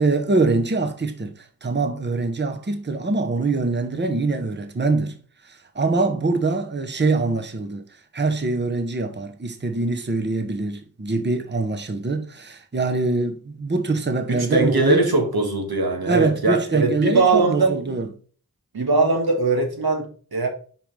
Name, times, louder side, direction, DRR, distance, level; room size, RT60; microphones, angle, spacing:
voice 1, 0.0-5.2 5.4-15.1 16.0-18.1, right 3 dB, 30° right, 0.9 m, -24 dB
voice 2, 14.3-17.7 18.7-20.5, right 3 dB, 85° right, 1.6 m, -21 dB
5.6 x 5.2 x 3.3 m
wide cardioid pair, 55°, 36 cm